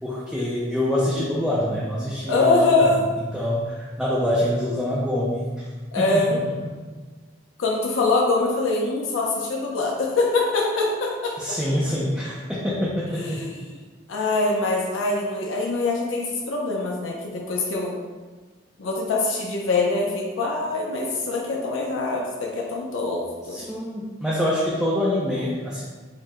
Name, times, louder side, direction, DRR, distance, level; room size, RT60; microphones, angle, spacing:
voice 1, 0.0-5.7 6.0-6.2 11.4-13.5 23.5-25.8, left 1 dB, ahead, -7 dB, 0.4 m, -25 dB
voice 2, 2.3-3.0 5.9-6.4 7.6-11.6 13.2-13.7 14.1-18.0 18.8-23.6, left 3 dB, 90° left, -2 dB, 0.5 m, -24 dB
4.6 x 2.0 x 3.6 m, 1.4 s
head